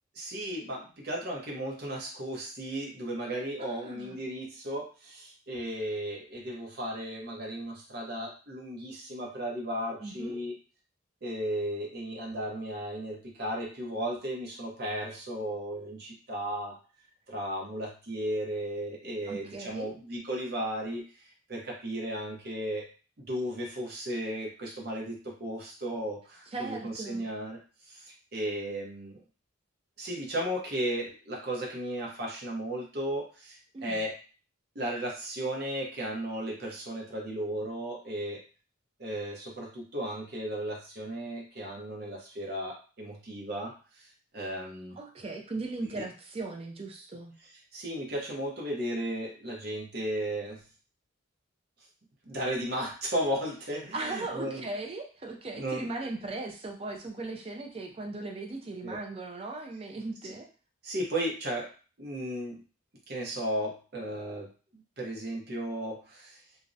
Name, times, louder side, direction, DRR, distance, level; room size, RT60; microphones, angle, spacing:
voice 1, 0.1-10.5 11.2-16.8 17.3-21.0 21.5-22.9 23.2-27.6 27.9-29.2 30.0-34.1 34.7-38.4 39.0-44.1 44.3-45.0 45.9-46.0 47.4-50.6 52.2-54.7 55.5-55.9 58.8-59.0 60.2-60.3 60.8-61.7 62.0-62.6 63.1-66.4, right 1 dB, 50° right, -1 dB, 0.7 m, -35 dB
voice 2, 3.6-4.2 10.0-10.4 19.3-19.9 26.5-27.3 33.7-34.0 45.0-47.4 53.9-60.5, right 3 dB, 30° right, 2 dB, 0.4 m, -38 dB
2.5 x 2.0 x 2.6 m, 0.37 s
head